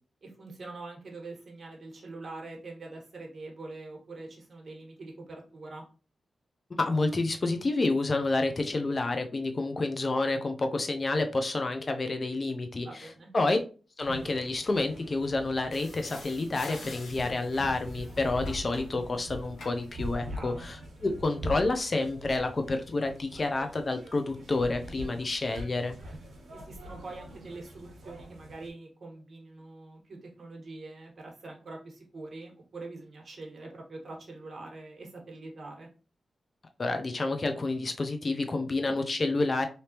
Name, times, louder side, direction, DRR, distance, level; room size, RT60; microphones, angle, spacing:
voice 1, 0.2-5.8 12.8-13.3 20.3-20.7 26.5-35.9, right 3 dB, 55° right, 1 dB, 1.2 m, -44 dB
voice 2, 6.7-13.1 13.3-13.6 14.0-26.0 36.8-39.7, left 2 dB, 40° left, 6 dB, 0.6 m, -29 dB
sound 1, 14.0-28.7, equal, 75° right, 1.2 m, -43 dB
sound 2, 15.7-18.9 19.6-20.0 23.8-23.9 24.6-24.7 25.5-25.6 26.9-27.1, left 2 dB, 85° left, 0.9 m, -47 dB
3.4 x 2.7 x 2.9 m, 0.36 s
cardioid pair, 85°, 0 cm